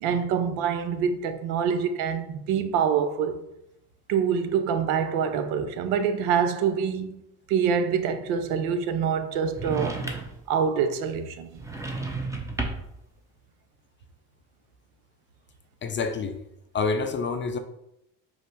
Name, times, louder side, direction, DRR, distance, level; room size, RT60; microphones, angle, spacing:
voice 1, 0.0-3.4 4.1-7.2 7.5-10.0 10.5-11.5, right 7 dB, 70° right, 0.6 m, -25 dB
sound 1, 9.5-10.5 11.6-13.0, right 2 dB, 5° right, 0.7 m, -32 dB
voice 2, 15.8-16.4 16.7-17.6, left 4 dB, 25° left, 0.4 m, -27 dB
5.0 x 2.0 x 4.5 m
hypercardioid pair, 60°, 44 cm